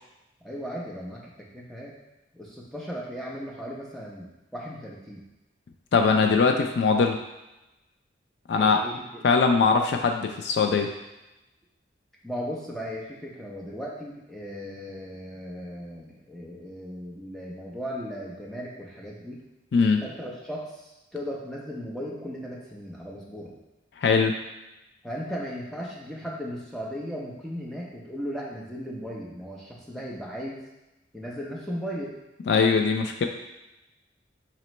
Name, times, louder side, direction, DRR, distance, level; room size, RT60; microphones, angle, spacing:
voice 1, 0.4-1.2 1.5-1.9 2.3-5.2 8.6-9.2 12.2-19.4 20.0-23.5 25.0-30.6 31.1-32.1, equal, ahead, -4 dB, 0.6 m, -36 dB
voice 2, 5.9-7.2 8.5-8.8 9.2-10.9 19.7-20.0 24.0-24.3 32.5-33.2, left 5 dB, 60° left, 4 dB, 0.3 m, -21 dB
4.2 x 2.9 x 3.0 m, 0.98 s
head